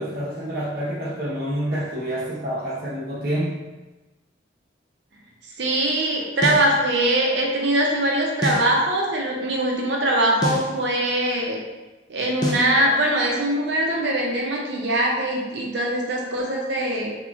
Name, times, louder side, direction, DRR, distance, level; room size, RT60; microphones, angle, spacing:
voice 1, 0.0-3.6, right 1 dB, 50° right, -8 dB, 0.9 m, -27 dB
voice 2, 5.6-11.6 12.1-17.1, right 1 dB, 70° right, -1 dB, 0.7 m, -22 dB
sound 1, 6.4-6.7 8.4-8.7 10.4-10.7 12.4-12.7, left 1 dB, 20° left, 0.4 m, -25 dB
3.6 x 2.9 x 2.4 m, 1.1 s
head